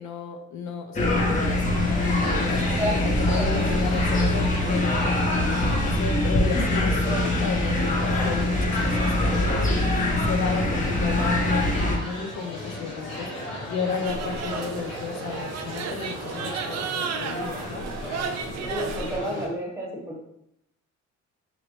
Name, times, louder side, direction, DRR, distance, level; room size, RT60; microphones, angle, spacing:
voice 1, 0.0-17.9, left 5 dB, 70° left, 6 dB, 0.6 m, -34 dB
sound 1, 1.0-12.0, left 1 dB, 25° left, 0.7 m, -23 dB
sound 2, 1.7-19.5, left 1 dB, 90° left, 1.1 m, -36 dB
sound 3, 14.0-19.2, right 6 dB, 60° right, 0.4 m, -33 dB
voice 2, 18.6-20.2, right 1 dB, 10° right, -4 dB, 1.0 m, -30 dB
3.0 x 2.5 x 3.0 m, 0.78 s
cardioid pair, 90°, 30 cm